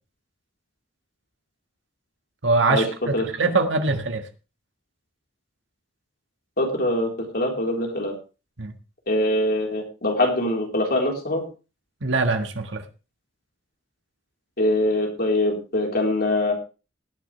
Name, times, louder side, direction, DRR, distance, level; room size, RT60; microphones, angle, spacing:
voice 1, 2.4-4.3 8.6-8.7 12.0-12.8, right 3 dB, 70° right, 6 dB, 1.7 m, -23 dB
voice 2, 6.6-8.1 9.1-11.4 14.6-16.5, left 1 dB, 55° left, 1 dB, 4.0 m, -23 dB
18.0 x 9.9 x 3.3 m, 0.32 s
head